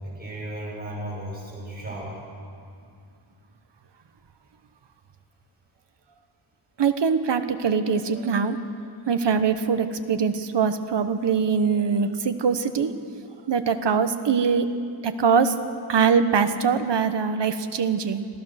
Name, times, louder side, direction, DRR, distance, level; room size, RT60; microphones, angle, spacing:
voice 1, 0.0-2.1, right 1 dB, 20° right, -5 dB, 6.7 m, -35 dB
voice 2, 6.8-8.6 9.1-13.0 13.5-14.7 15.0-15.6 15.9-18.3, right 6 dB, 65° right, 9 dB, 1.1 m, -22 dB
26.0 x 16.0 x 6.5 m, 2.3 s
wide cardioid pair, 180°, 45 cm